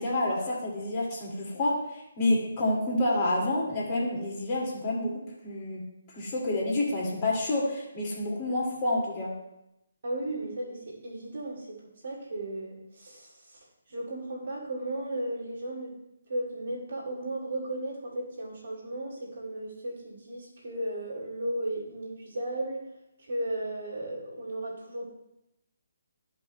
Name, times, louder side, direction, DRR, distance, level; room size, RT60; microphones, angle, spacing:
voice 1, 0.0-5.8 6.1-9.3, left 1 dB, 30° left, -4 dB, 2.1 m, -28 dB
voice 2, 10.0-11.8 12.0-13.6 13.9-15.9 16.3-22.8 23.2-25.0, right 1 dB, 60° right, -3 dB, 2.5 m, -35 dB
13.5 x 5.3 x 2.2 m, 0.87 s
figure-of-eight pair, 145°, 0 cm